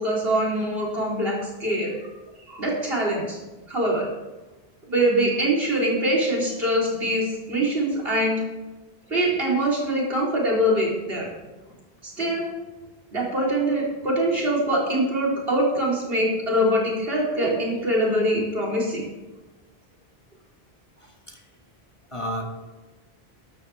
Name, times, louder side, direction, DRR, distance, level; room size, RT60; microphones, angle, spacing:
voice 1, 0.0-2.1 2.5-3.4 3.7-4.1 4.9-8.4 9.1-11.3 12.0-12.5 13.1-19.1, right 1 dB, 70° right, -3 dB, 4.2 m, -23 dB
voice 2, 21.0-21.4 22.1-22.4, equal, 30° left, 1 dB, 1.7 m, -32 dB
13.5 x 12.5 x 3.6 m, 1.1 s
omnidirectional pair, 1.0 m